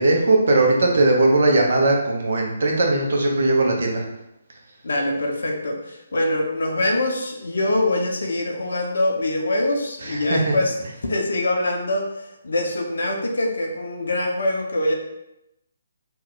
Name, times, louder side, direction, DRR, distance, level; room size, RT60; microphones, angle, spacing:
voice 1, 0.0-4.0 10.1-10.6, right 2 dB, 55° right, 0 dB, 0.7 m, -19 dB
voice 2, 4.8-10.7 11.1-14.9, left 1 dB, 60° left, 2 dB, 0.6 m, -24 dB
3.0 x 2.2 x 3.7 m, 0.88 s
figure-of-eight pair, 140°, 0 cm